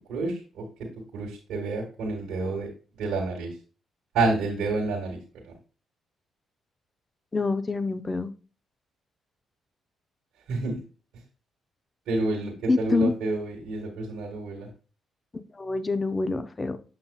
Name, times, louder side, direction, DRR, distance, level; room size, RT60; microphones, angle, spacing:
voice 1, 0.1-0.6 1.1-2.7 3.0-3.5 4.1-5.2 10.5-10.8 12.1-14.7, right 3 dB, 80° right, -3 dB, 1.6 m, -29 dB
voice 2, 7.3-8.3 12.7-13.1 15.3-16.8, left 3 dB, 30° left, 11 dB, 0.7 m, -26 dB
7.6 x 5.8 x 2.4 m, 0.36 s
supercardioid pair, 65°, 0 cm